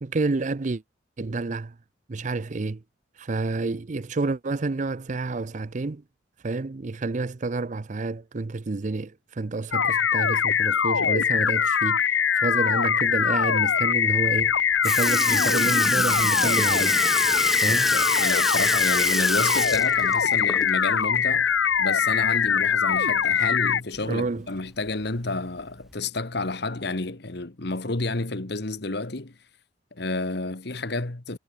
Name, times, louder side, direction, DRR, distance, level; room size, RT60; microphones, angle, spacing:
voice 1, 0.0-0.8 1.2-1.7 2.1-2.8 3.2-6.0 6.4-14.6 14.8-17.0 17.6-18.0 24.1-24.5, right 3 dB, 40° right, 0.5 m, -29 dB
sound 1, 9.7-23.8, left 7 dB, 85° left, 1.1 m, -22 dB
Sink (filling or washing) / Liquid, 14.4-14.5 14.8-20.9 21.3-21.4 22.9-23.0 24.0-24.1 24.9-25.1 25.9-26.0, right 1 dB, ahead, 0.9 m, -27 dB
voice 2, 17.7-21.5 21.8-29.4 29.9-31.4, left 2 dB, 60° left, 1.5 m, -30 dB
head